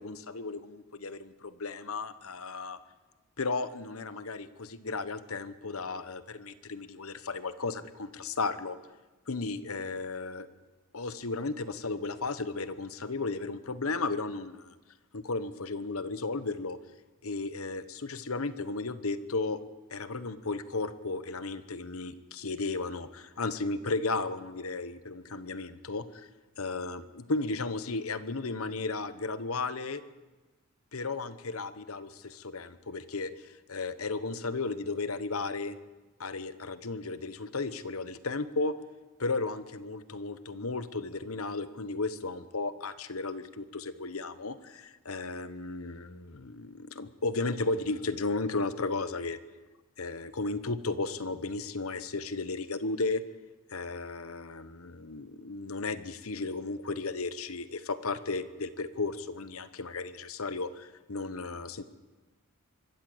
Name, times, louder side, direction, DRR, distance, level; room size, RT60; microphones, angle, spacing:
voice 1, 0.0-2.8 3.4-8.8 9.3-10.5 10.9-14.7 15.1-16.8 17.2-19.6 19.9-26.3 26.6-30.0 30.9-35.8 36.2-38.7 39.2-49.4 50.0-53.2 53.7-61.8, left 3 dB, 65° left, 13 dB, 1.1 m, -34 dB
24.5 x 13.5 x 8.0 m, 1.2 s
head